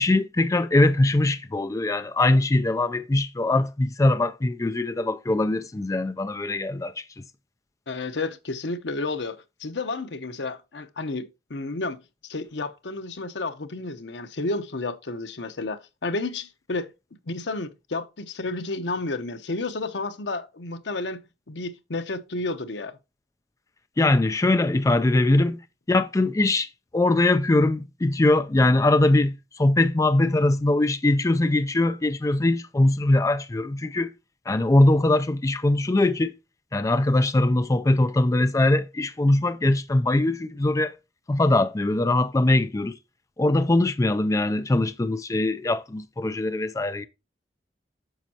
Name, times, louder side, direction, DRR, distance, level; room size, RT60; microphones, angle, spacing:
voice 1, 0.0-7.0 24.0-25.6 25.9-26.7 26.9-34.1 34.5-36.3 36.7-40.9 41.3-42.9 43.4-47.1, left 2 dB, 20° left, 0.4 m, -21 dB
voice 2, 7.9-16.9 17.3-23.0, left 3 dB, 85° left, 0.8 m, -31 dB
9.1 x 6.2 x 2.8 m
head